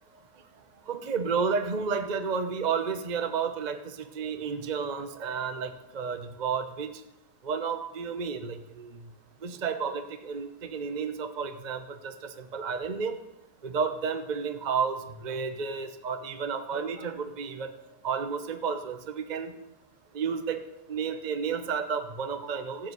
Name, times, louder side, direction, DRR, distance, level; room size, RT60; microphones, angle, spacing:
voice 1, 0.9-3.8 4.1-7.0 7.4-9.0 9.4-13.2 13.6-17.7 18.0-19.5 20.1-20.6 20.9-22.9, right 6 dB, 35° right, 8 dB, 0.9 m, -31 dB
15.0 x 7.3 x 9.4 m, 0.94 s
omnidirectional pair, 1.7 m